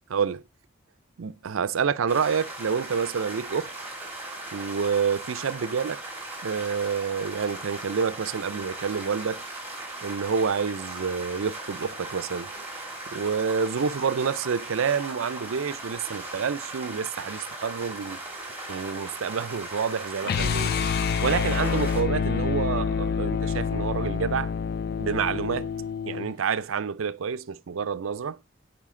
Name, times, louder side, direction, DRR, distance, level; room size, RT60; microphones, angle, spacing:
voice 1, 0.1-0.4 1.2-3.7 4.5-6.0 6.4-9.4 10.0-12.5 13.1-18.2 18.7-20.7 21.2-24.5 25.0-25.7 26.1-28.4, right 6 dB, 85° right, 0.5 m, -28 dB
sound 1, 2.1-22.0, right 2 dB, 10° right, 2.7 m, -38 dB
sound 2, 20.2-26.3, left 6 dB, 50° left, 0.3 m, -27 dB
7.5 x 4.4 x 3.7 m
head